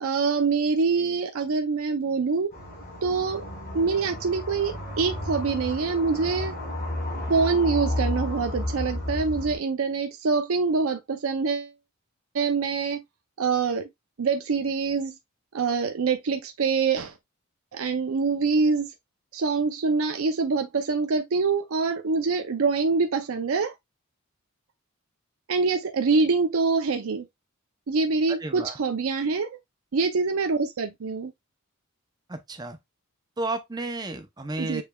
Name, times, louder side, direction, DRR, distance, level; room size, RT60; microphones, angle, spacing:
voice 1, 0.0-2.5 3.0-3.4 3.7-6.5 7.3-11.7 12.3-13.0 13.4-13.9 14.2-15.2 15.5-17.2 17.7-18.9 19.3-23.7 25.5-27.3 27.9-29.6 29.9-31.3 34.6-34.8, right 4 dB, 65° right, 0.5 m, -25 dB
sound 1, 2.5-9.6, left 1 dB, 40° left, 3.1 m, -32 dB
voice 2, 28.4-28.8 32.3-32.8 33.4-34.8, right 2 dB, 20° right, 0.6 m, -32 dB
6.7 x 3.3 x 2.3 m
head